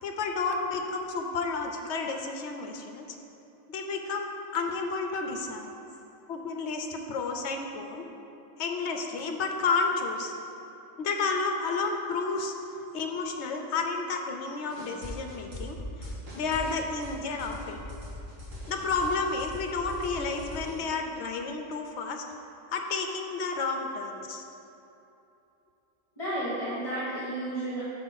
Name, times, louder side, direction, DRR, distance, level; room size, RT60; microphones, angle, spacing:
voice 1, 0.0-3.1 3.7-5.7 6.3-8.0 8.6-10.3 11.0-12.5 12.9-17.8 18.7-22.2 22.7-24.4, left 4 dB, 65° left, 3 dB, 0.9 m, -31 dB
sound 1, 14.7-20.8, left 1 dB, 85° right, 1.9 m, -41 dB
voice 2, 26.2-27.8, right 1 dB, 30° left, -11 dB, 1.6 m, -32 dB
5.8 x 4.4 x 6.2 m, 2.9 s
omnidirectional pair, 1.3 m